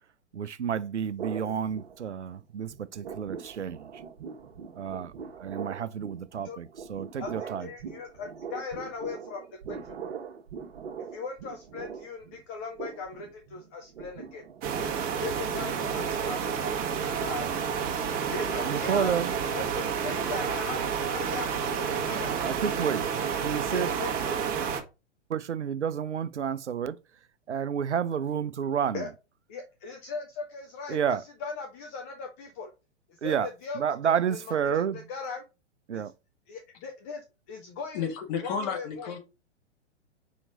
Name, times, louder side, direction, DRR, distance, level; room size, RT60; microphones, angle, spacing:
voice 1, 0.3-3.9 4.8-7.7 18.7-19.3 22.4-23.0 23.4-23.9 25.3-27.0 27.5-29.0 30.9-31.2 33.2-33.5 33.8-35.0 35.9-36.1, right 8 dB, 75° right, 0.6 m, -30 dB
sound 1, 1.2-2.4 2.7-15.8, right 6 dB, 55° right, 1.3 m, -42 dB
voice 2, 7.2-9.8 11.1-14.4 15.2-17.5 18.3-19.1 19.5-22.3 23.7-24.3 28.9-29.1 29.5-32.7 33.2-35.4 35.9-36.0 36.5-38.1 38.4-39.1, left 4 dB, 10° left, 0.3 m, -39 dB
sound 2, 14.6-24.8, right 7 dB, 25° right, 1.2 m, -30 dB
voice 3, 37.9-39.2, left 6 dB, 35° left, 1.9 m, -32 dB
5.1 x 4.4 x 5.0 m
figure-of-eight pair, 110°, 35 cm